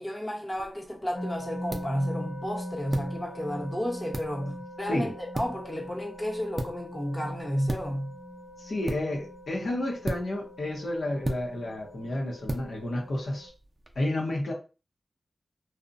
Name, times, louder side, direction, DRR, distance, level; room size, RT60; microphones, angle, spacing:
voice 1, 0.0-8.1, equal, 20° left, 0.9 m, -32 dB
sound 1, 0.5-14.0, right 1 dB, 40° right, 0.4 m, -39 dB
sound 2, 1.2-13.5, equal, 45° left, 0.5 m, -41 dB
voice 2, 8.6-13.5 13.9-14.5, left 1 dB, 80° left, 0.7 m, -31 dB
2.7 x 2.0 x 2.5 m
cardioid pair, 50°, 0 cm